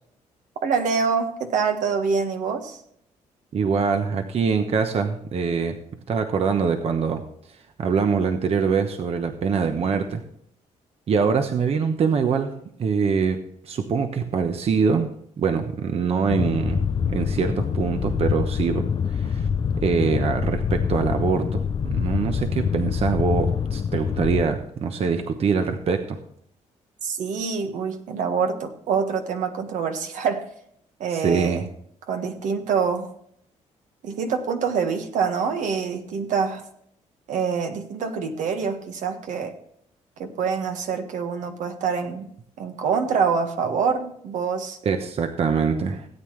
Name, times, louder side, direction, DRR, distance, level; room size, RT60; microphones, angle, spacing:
voice 1, 0.6-2.8 27.0-30.4 31.0-31.7 32.1-33.1 34.0-36.6 37.3-39.5 40.2-42.3 42.6-44.8, right 6 dB, 75° right, 5 dB, 1.6 m, -25 dB
voice 2, 3.5-5.8 6.1-7.2 7.5-10.2 11.1-12.5 12.8-15.1 15.4-19.5 19.8-26.2 31.1-31.6 44.8-46.1, right 5 dB, 50° right, 6 dB, 1.0 m, -24 dB
sound 1, 16.3-24.4, left 7 dB, 40° left, 0.6 m, -25 dB
17.0 x 8.8 x 3.3 m, 0.68 s
cardioid pair, 105°, 13 cm